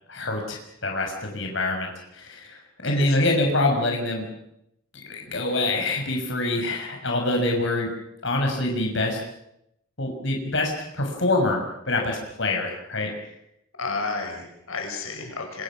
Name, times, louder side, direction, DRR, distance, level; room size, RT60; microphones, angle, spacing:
voice 1, 0.1-4.3 5.2-7.9 8.2-9.2 10.0-11.6 11.9-13.1, left 2 dB, 60° left, 2 dB, 6.3 m, -25 dB
voice 2, 2.8-3.3 13.8-15.6, left 4 dB, 85° left, 3 dB, 6.4 m, -32 dB
28.5 x 26.0 x 6.3 m, 0.79 s
head